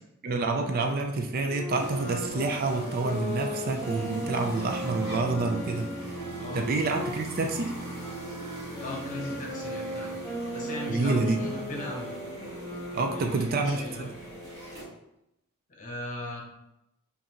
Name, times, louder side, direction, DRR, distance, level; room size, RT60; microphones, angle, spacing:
voice 1, 0.2-6.2 6.5-7.8 10.9-11.5 12.9-14.1, right 3 dB, 45° right, 5 dB, 0.4 m, -28 dB
Wind instrument woodwind instrument, 1.4-7.2 8.0-13.4, equal, 10° left, 1.2 m, -37 dB
sound 1, 1.7-14.8, right 1 dB, 20° right, 1.3 m, -40 dB
voice 2, 6.4-6.8 8.8-10.2 10.5-12.1 13.1-14.1 15.7-16.4, left 1 dB, 35° left, -2 dB, 0.9 m, -38 dB
5.0 x 2.6 x 2.9 m, 0.86 s
head